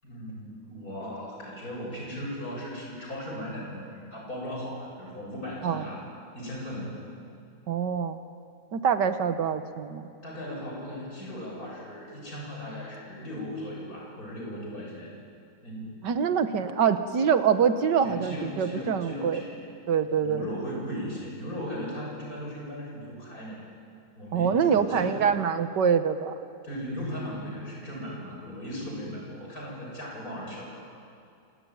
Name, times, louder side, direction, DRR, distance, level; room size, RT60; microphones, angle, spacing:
voice 1, 0.0-6.0 6.3-7.0 10.2-15.1 15.6-16.1 18.0-19.7 20.2-23.6 24.2-25.4 26.6-30.9, equal, 55° left, -2 dB, 7.5 m, -37 dB
voice 2, 7.7-8.2 8.7-10.1 16.0-19.4 19.9-20.4 24.3-26.4, right 7 dB, 90° right, 9 dB, 1.8 m, -25 dB
26.5 x 19.0 x 9.5 m, 2.5 s
omnidirectional pair, 1.8 m